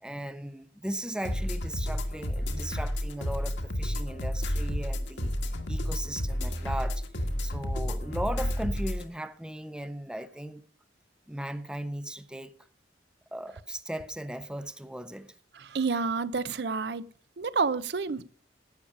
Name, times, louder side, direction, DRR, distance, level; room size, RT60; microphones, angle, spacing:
voice 1, 0.0-7.1 7.4-10.6 11.3-12.5 13.3-15.3, right 1 dB, 5° right, 0.5 m, -37 dB
sound 1, 1.2-9.0, equal, 80° left, 1.7 m, -31 dB
voice 2, 15.5-17.1 17.4-18.2, right 4 dB, 65° right, 0.6 m, -29 dB
12.0 x 8.7 x 5.2 m
head